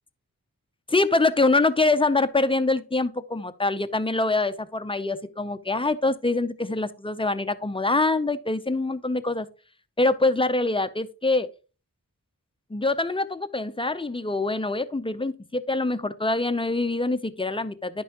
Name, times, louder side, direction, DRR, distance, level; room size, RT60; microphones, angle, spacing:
voice 1, 0.9-9.5 10.0-11.5 12.7-18.0, left 2 dB, 15° left, 0.5 m, -24 dB
10.0 x 5.4 x 2.8 m
wide cardioid pair, 60°, 35 cm